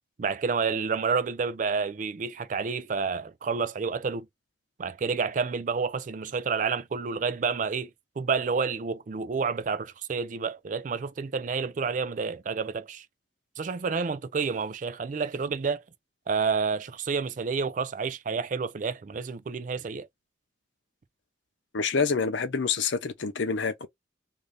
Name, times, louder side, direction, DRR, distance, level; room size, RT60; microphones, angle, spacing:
voice 1, 0.2-4.3 4.8-7.9 8.2-13.1 13.6-15.8 16.3-20.1, right 5 dB, 40° right, 0.3 m, -29 dB
voice 2, 21.7-23.9, left 5 dB, 75° left, 0.7 m, -27 dB
2.6 x 2.6 x 3.3 m
head